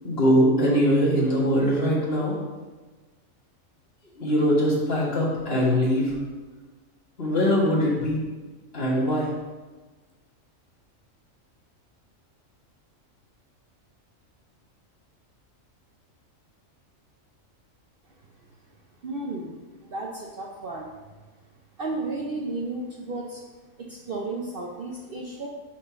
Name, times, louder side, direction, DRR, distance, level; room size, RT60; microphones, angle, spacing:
voice 1, 0.0-2.3 4.2-6.1 7.2-8.2 8.7-9.3, equal, 50° left, -5 dB, 1.9 m, -22 dB
voice 2, 19.0-19.5 19.8-20.9 21.8-23.4 23.8-25.5, right 2 dB, 55° right, 0 dB, 0.7 m, -33 dB
6.0 x 4.2 x 5.7 m, 1.3 s
omnidirectional pair, 1.4 m